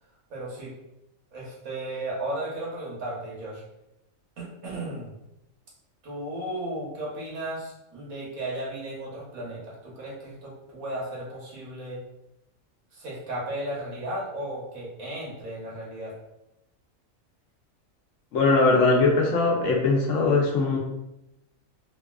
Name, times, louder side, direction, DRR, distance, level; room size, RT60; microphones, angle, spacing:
voice 1, 0.3-0.7 1.3-3.6 4.4-5.1 6.0-12.0 12.9-16.1, right 1 dB, 85° right, -5 dB, 1.5 m, -35 dB
voice 2, 18.3-20.8, left 3 dB, 65° left, -2 dB, 1.0 m, -21 dB
3.4 x 2.4 x 2.3 m, 0.87 s
omnidirectional pair, 1.4 m